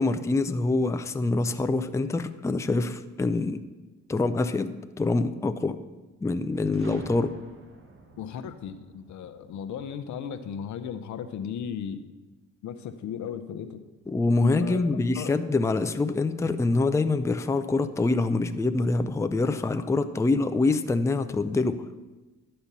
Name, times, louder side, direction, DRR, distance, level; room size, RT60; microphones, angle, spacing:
voice 1, 0.0-3.6 4.1-5.8 6.2-7.3 14.1-21.8, left 3 dB, 10° left, 9 dB, 0.5 m, -25 dB
Boom, 6.7-10.6, right 2 dB, 45° right, 1.5 m, -48 dB
voice 2, 8.2-12.1 12.6-13.8 14.4-14.9 15.1-15.3, left 8 dB, 70° left, 10 dB, 0.7 m, -35 dB
11.0 x 4.4 x 6.8 m, 1.2 s
cardioid pair, 90°, 30 cm